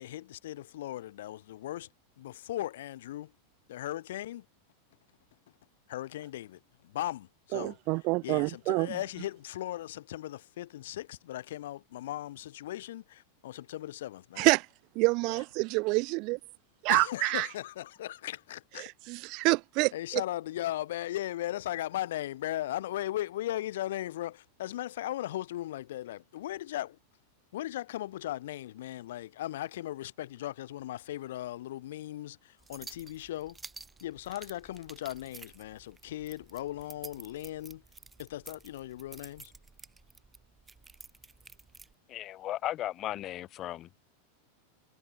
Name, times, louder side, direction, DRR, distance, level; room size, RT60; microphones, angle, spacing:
voice 1, 0.0-1.9 2.2-3.3 3.7-4.4 5.9-7.8 8.2-14.5 16.9-18.9 19.9-27.0 27.5-33.6 34.0-37.8 38.2-39.5, left 14 dB, 70° left, 1.1 m, -37 dB
voice 2, 7.5-9.0 14.4-14.7 15.0-16.4 16.8-17.5 18.8-20.2, right 26 dB, 50° right, 0.5 m, -27 dB
sound 1, 32.6-41.9, right 4 dB, 15° right, 3.7 m, -51 dB
voice 3, 42.1-44.0, left 13 dB, 40° left, 0.8 m, -36 dB
hypercardioid pair, 95°, 0 cm